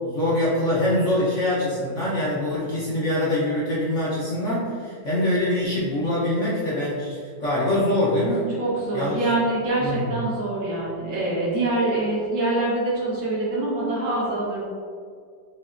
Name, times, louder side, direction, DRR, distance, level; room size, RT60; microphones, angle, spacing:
voice 1, 0.0-8.5 8.9-9.2 9.8-10.1, left 1 dB, 50° left, -8 dB, 1.0 m, -24 dB
voice 2, 8.6-14.7, right 2 dB, 75° right, -7 dB, 2.1 m, -25 dB
5.8 x 3.2 x 2.5 m, 2.1 s
omnidirectional pair, 2.1 m